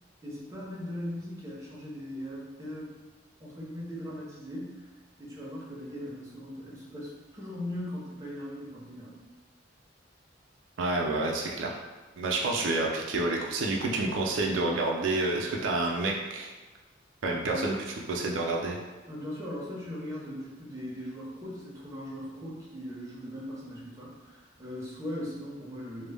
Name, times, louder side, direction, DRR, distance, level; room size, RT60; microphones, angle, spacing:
voice 1, 0.2-2.9 3.4-4.8 5.2-9.2 17.4-17.7 19.1-26.1, equal, 15° right, -5 dB, 0.5 m, -39 dB
voice 2, 10.8-11.8 12.2-16.5 17.2-17.8 18.1-18.8, right 2 dB, 85° right, -1 dB, 0.4 m, -29 dB
2.0 x 2.0 x 3.3 m, 1.2 s
head